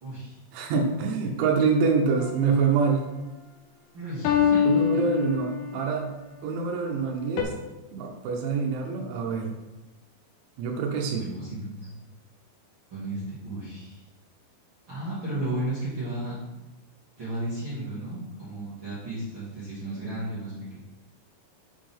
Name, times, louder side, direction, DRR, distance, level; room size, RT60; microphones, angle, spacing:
voice 1, 0.0-0.4 3.9-5.0 11.2-11.9 12.9-14.0 14.9-16.4 17.2-20.8, right 1 dB, 35° right, -11 dB, 2.1 m, -34 dB
voice 2, 0.5-3.0 4.6-6.1 6.4-7.5 7.9-9.5 10.6-11.3, right 5 dB, 90° right, 0 dB, 3.2 m, -25 dB
sound 1, 2.2-2.9 4.3-5.9 7.4-7.5, left 8 dB, 75° left, 2.5 m, -25 dB
8.1 x 5.3 x 3.6 m, 1.1 s
omnidirectional pair, 5.2 m